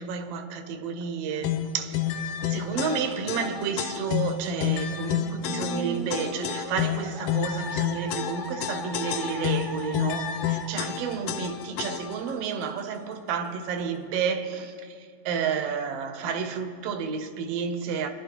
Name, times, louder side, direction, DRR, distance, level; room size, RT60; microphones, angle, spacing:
voice 1, 0.0-1.9 2.4-14.7 15.3-18.1, right 6 dB, 65° right, 1.8 m, -31 dB
sound 1, 1.4-12.3, left 9 dB, 90° left, 1.3 m, -30 dB
Musical instrument, 5.4-10.7, right 1 dB, ahead, 0.8 m, -38 dB
26.5 x 11.0 x 3.0 m
omnidirectional pair, 3.4 m